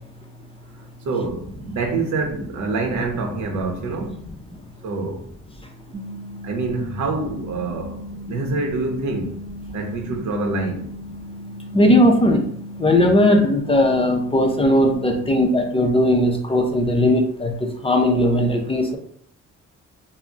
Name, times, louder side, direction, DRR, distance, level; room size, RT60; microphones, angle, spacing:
voice 1, 1.0-4.3 4.8-5.3 6.4-9.4 9.7-10.9, right 3 dB, 70° right, 0.8 m, -26 dB
sound 1, 5.9-15.5, equal, 25° right, 0.6 m, -37 dB
voice 2, 11.7-12.4 12.8-17.5 17.8-19.0, left 1 dB, 20° left, 0.5 m, -18 dB
2.3 x 2.1 x 3.8 m
cardioid pair, 90°, 30 cm